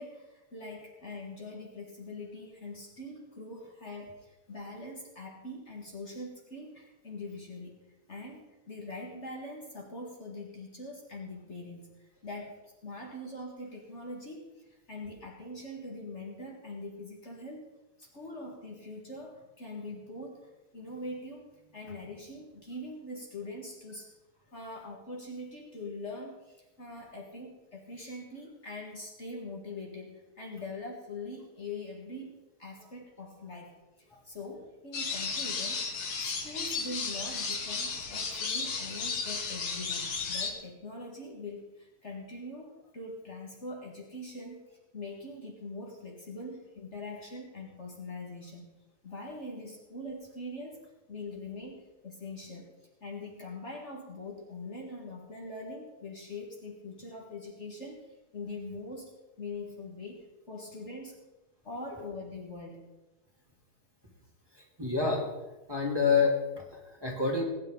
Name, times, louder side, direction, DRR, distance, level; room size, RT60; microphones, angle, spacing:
voice 1, 0.0-7.8 8.1-17.7 18.0-24.1 24.5-35.9 36.2-48.7 49.0-61.2 61.6-62.8, left 2 dB, 45° left, -1 dB, 2.1 m, -43 dB
sound 1, 34.9-40.5, left 5 dB, 70° left, 2.0 m, -34 dB
voice 2, 64.5-65.2 65.7-67.4, left 5 dB, 15° right, -3 dB, 2.9 m, -28 dB
20.5 x 9.8 x 3.9 m, 1.1 s
omnidirectional pair, 1.7 m